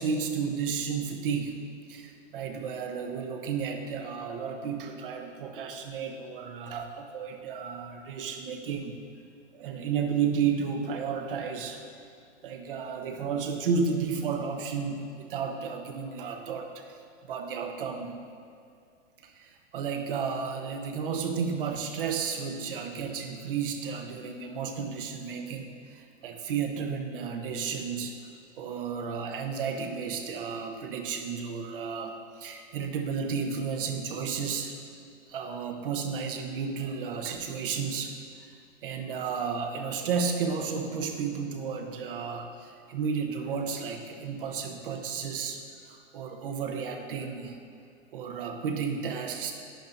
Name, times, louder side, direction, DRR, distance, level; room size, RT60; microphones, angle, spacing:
voice 1, 0.0-1.6 1.9-9.0 9.5-11.8 12.4-17.0 17.3-18.1 19.2-28.3 28.6-34.8 35.3-38.5 38.8-47.6 48.1-49.5, right 6 dB, 45° right, 4 dB, 0.9 m, -32 dB
11.5 x 8.5 x 2.7 m, 2.4 s
hypercardioid pair, 170°, 38 cm